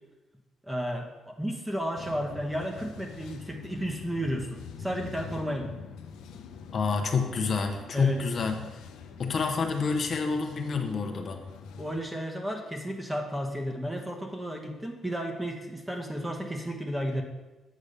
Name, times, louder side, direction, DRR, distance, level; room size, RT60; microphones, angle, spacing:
voice 1, 0.6-5.7 7.9-8.2 11.7-17.2, equal, 10° right, 2 dB, 1.2 m, -33 dB
sound 1, 2.0-12.0, left 6 dB, 85° left, 0.6 m, -45 dB
voice 2, 6.7-8.6 9.2-11.4, left 5 dB, 50° left, 4 dB, 0.8 m, -28 dB
8.4 x 3.6 x 6.7 m, 1.1 s
cardioid pair, 90°, 0 cm